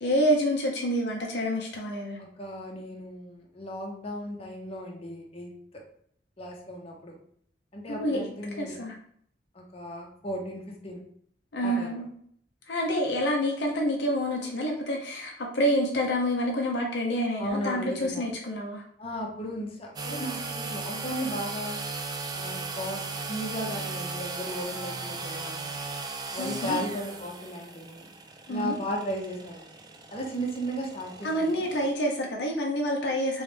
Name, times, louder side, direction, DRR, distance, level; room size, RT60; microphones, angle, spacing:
voice 1, 0.0-2.2 7.9-8.2 8.6-9.0 11.5-12.1 12.7-18.8 26.4-26.9 28.5-28.7 31.2-33.4, equal, 70° left, 0 dB, 0.6 m, -28 dB
voice 2, 2.2-5.5 6.4-7.1 7.7-8.7 9.5-11.0 11.6-12.0 17.4-18.3 19.0-21.8 22.3-23.0 23.3-25.8 26.3-28.1 28.5-29.7 30.1-31.7, equal, 35° left, -1 dB, 0.8 m, -35 dB
sound 1, 20.0-31.9, right 3 dB, 25° right, 0.3 m, -37 dB
3.2 x 3.1 x 3.2 m, 0.64 s
head